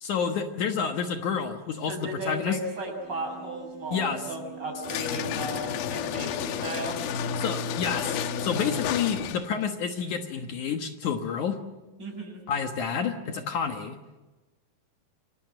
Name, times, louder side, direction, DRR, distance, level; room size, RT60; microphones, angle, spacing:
voice 1, 0.0-2.6 3.9-4.2 7.4-11.6 12.5-14.0, left 6 dB, 65° left, 5 dB, 2.5 m, -29 dB
voice 2, 1.9-7.0 12.0-12.4, right 2 dB, 30° right, 2 dB, 7.6 m, -35 dB
sound 1, 2.9-8.7, right 14 dB, 70° right, 4.7 m, -45 dB
sound 2, 4.8-9.6, left 8 dB, 80° left, 2.8 m, -31 dB
28.5 x 23.0 x 7.8 m, 1.2 s
omnidirectional pair, 4.2 m